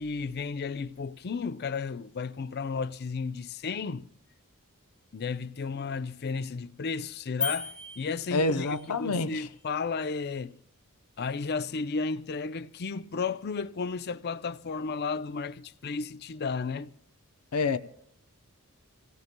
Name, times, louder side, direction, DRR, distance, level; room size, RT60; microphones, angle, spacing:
voice 1, 0.0-4.1 5.1-10.6 11.2-16.9, left 4 dB, 45° left, 0.5 m, -33 dB
sound 1, 7.4-8.9, left 4 dB, 5° left, 0.6 m, -36 dB
voice 2, 8.3-9.5 17.5-17.8, left 3 dB, 90° left, 0.7 m, -27 dB
27.5 x 17.5 x 2.2 m
head